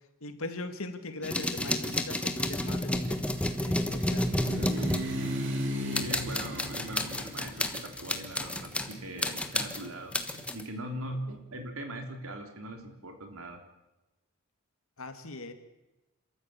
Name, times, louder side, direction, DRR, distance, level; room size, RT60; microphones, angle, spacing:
voice 1, 0.2-5.2 5.8-6.2 15.0-15.5, left 2 dB, 70° left, 8 dB, 2.2 m, -41 dB
sound 1, 1.2-5.6 5.9-8.9 9.2-10.6, left 1 dB, 5° left, 1.3 m, -31 dB
sound 2, 2.2-10.1, equal, 60° right, 3.1 m, -38 dB
voice 2, 6.0-13.6, right 1 dB, 75° right, 5 dB, 3.4 m, -40 dB
29.0 x 13.5 x 8.5 m, 1.0 s
head